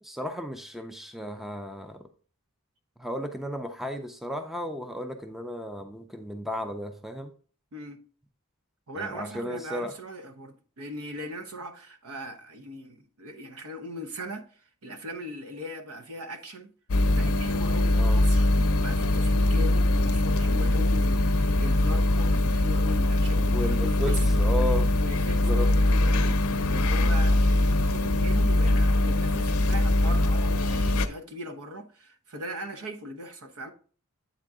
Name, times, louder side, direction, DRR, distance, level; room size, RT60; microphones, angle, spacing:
voice 1, 0.0-2.0 3.0-7.3 9.0-9.9 17.9-18.2 23.5-24.9 25.4-25.7, equal, ahead, 0.4 m, -34 dB
voice 2, 7.7-8.0 8.9-16.7 17.1-24.2 25.0-26.4 26.7-33.7, equal, 70° right, 0.8 m, -39 dB
sound 1, 16.9-31.1, left 1 dB, 75° left, 0.6 m, -22 dB
8.3 x 3.7 x 3.6 m
head